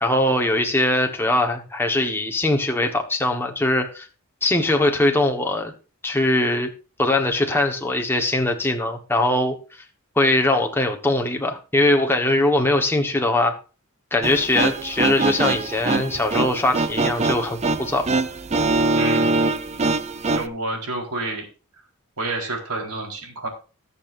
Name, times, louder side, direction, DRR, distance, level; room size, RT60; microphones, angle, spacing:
voice 1, 0.0-4.1 4.4-5.7 6.0-6.7 7.0-9.6 10.2-13.5 14.1-18.1, left 1 dB, 10° left, 3 dB, 1.2 m, -21 dB
sound 1, 14.2-20.5, right 3 dB, 30° right, 0.5 m, -23 dB
voice 2, 19.0-19.4 20.3-21.5 22.2-23.5, right 2 dB, 90° right, 1 dB, 4.2 m, -29 dB
19.5 x 7.1 x 2.6 m, 0.34 s
head